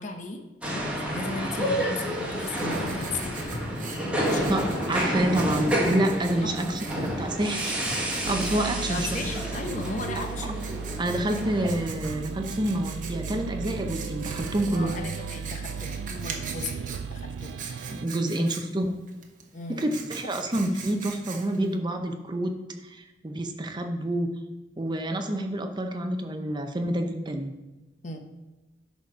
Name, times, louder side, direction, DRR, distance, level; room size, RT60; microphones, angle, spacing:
voice 1, 0.0-3.6 4.2-4.6 6.4-6.8 8.9-10.6 11.3-11.7 14.7-17.7 18.4-18.5 19.5-19.9 20.2-20.3 28.0-28.2, left 3 dB, 40° left, 5 dB, 0.8 m, -36 dB
sound 1, 0.6-11.9, equal, 5° right, 1.5 m, -29 dB
Writing, 2.0-21.8, right 5 dB, 45° right, 1.0 m, -43 dB
voice 2, 4.5-7.7 8.3-9.1 10.2-10.3 11.0-14.9 17.9-18.9 19.7-22.5 22.8-24.3 24.8-27.5, right 1 dB, 25° right, 5 dB, 0.6 m, -28 dB
sound 2, 8.2-18.1, right 6 dB, 85° right, 0.3 m, -36 dB
11.0 x 4.1 x 4.8 m, 1.1 s
head